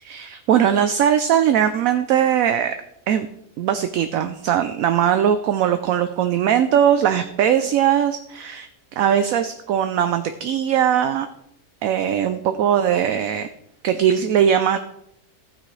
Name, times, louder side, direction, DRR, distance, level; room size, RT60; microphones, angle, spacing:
voice 1, 0.0-2.8 3.1-3.3 3.6-8.7 9.0-11.3 11.8-13.5 13.8-14.8, right 9 dB, 70° right, 9 dB, 1.0 m, -20 dB
15.0 x 9.1 x 3.2 m, 0.77 s
omnidirectional pair, 1.6 m